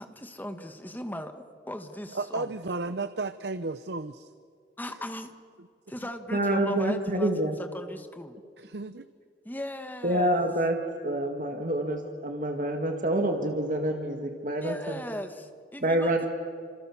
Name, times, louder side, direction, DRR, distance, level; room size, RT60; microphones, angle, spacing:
voice 1, 0.0-2.5 4.8-5.3 5.9-8.4 9.5-10.5 14.6-16.3, left 1 dB, 10° left, 7 dB, 1.6 m, -38 dB
voice 2, 2.1-4.3 5.6-5.7 8.6-9.1, right 3 dB, 75° right, 12 dB, 0.8 m, -33 dB
voice 3, 6.3-7.6 10.0-10.8 11.0-15.0 15.8-16.3, right 1 dB, 50° right, 3 dB, 2.0 m, -27 dB
30.0 x 26.5 x 7.2 m, 2.2 s
head